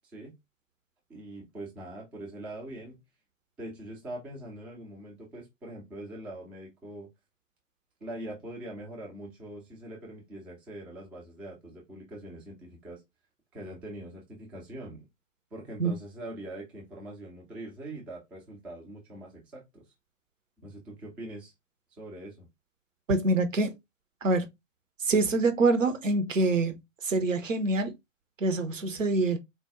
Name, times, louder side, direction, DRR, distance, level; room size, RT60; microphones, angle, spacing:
voice 1, 1.1-3.0 3.6-7.1 8.0-13.0 13.5-15.0 15.5-19.8 20.6-21.5 22.0-22.5, right 1 dB, 5° right, 0.3 m, -42 dB
voice 2, 23.1-23.7 24.2-24.5 25.0-26.8 27.0-27.9 28.4-29.4, right 3 dB, 75° right, 0.9 m, -25 dB
4.2 x 2.2 x 3.5 m
figure-of-eight pair, 105°, 39 cm